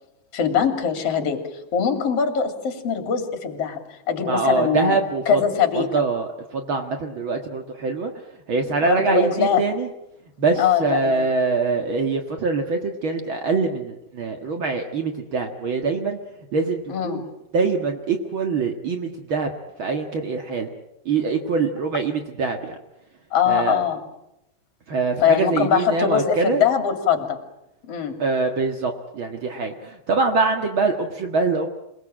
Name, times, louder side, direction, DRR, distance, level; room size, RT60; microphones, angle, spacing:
voice 1, 0.3-3.8 4.1-5.0 5.3-5.9 8.9-9.6 10.6-11.2 16.9-17.2 23.3-24.0 25.2-27.4 27.9-28.1, left 7 dB, 40° left, 7 dB, 3.4 m, -22 dB
voice 2, 4.3-5.4 5.7-8.1 8.5-9.9 10.4-16.2 16.5-17.3 17.5-19.5 19.8-20.7 21.0-22.8 23.5-23.8 24.9-26.6 28.2-31.7, right 4 dB, 70° right, 4 dB, 1.2 m, -24 dB
28.0 x 20.0 x 8.8 m, 0.87 s
omnidirectional pair, 5.1 m